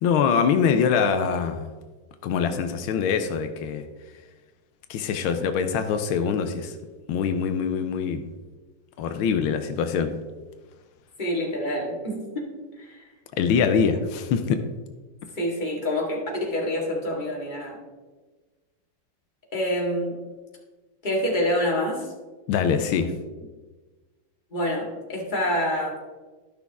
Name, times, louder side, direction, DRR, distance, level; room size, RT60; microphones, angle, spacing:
voice 1, 0.0-1.7 2.2-3.8 4.9-6.7 7.1-8.2 9.0-10.1 13.4-14.6 22.5-23.1, left 6 dB, 85° left, 8 dB, 1.5 m, -23 dB
voice 2, 11.2-12.5 12.8-13.0 15.4-17.8 19.5-20.2 21.0-22.1 24.5-25.9, left 1 dB, 25° left, -2 dB, 2.1 m, -27 dB
12.5 x 6.1 x 3.6 m, 1.3 s
omnidirectional pair, 2.2 m